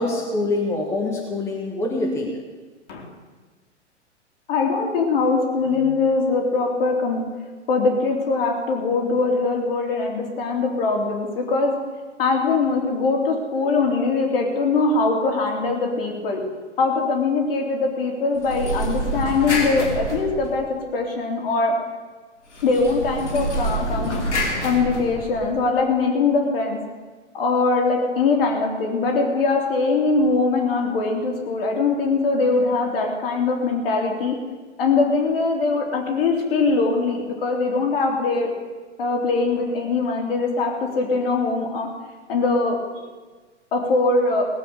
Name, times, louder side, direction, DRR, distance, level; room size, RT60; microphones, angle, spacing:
voice 1, 0.0-2.3, left 2 dB, 5° left, -1 dB, 1.4 m, -25 dB
voice 2, 4.5-7.2 7.7-11.7 12.2-16.4 16.8-20.7 20.9-21.7 22.6-24.2 24.6-26.8 27.3-34.3 34.8-38.5 39.0-41.9 42.3-43.0 43.7-44.4, left 3 dB, 50° left, 1 dB, 3.1 m, -22 dB
sound 1, 18.3-20.9 22.5-25.7, right 1 dB, 75° left, 3.2 m, -27 dB
18.0 x 7.7 x 6.9 m, 1.3 s
figure-of-eight pair, 110°, 36 cm